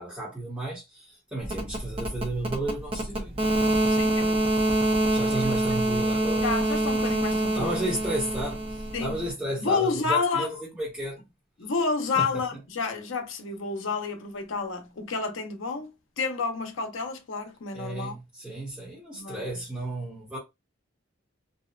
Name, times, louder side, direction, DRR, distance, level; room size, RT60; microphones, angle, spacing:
voice 1, 0.0-3.5 5.1-6.4 7.5-10.5 10.8-11.2 12.2-12.4 17.7-20.4, right 1 dB, 5° right, 0.9 m, -33 dB
sound 1, 1.4-9.3, right 1 dB, 30° right, 0.6 m, -26 dB
voice 2, 3.9-4.5 6.4-7.8 8.9-9.1 9.6-10.5 11.6-15.9 16.2-18.2 19.1-19.5, left 4 dB, 75° left, 0.6 m, -30 dB
2.7 x 2.1 x 2.3 m
head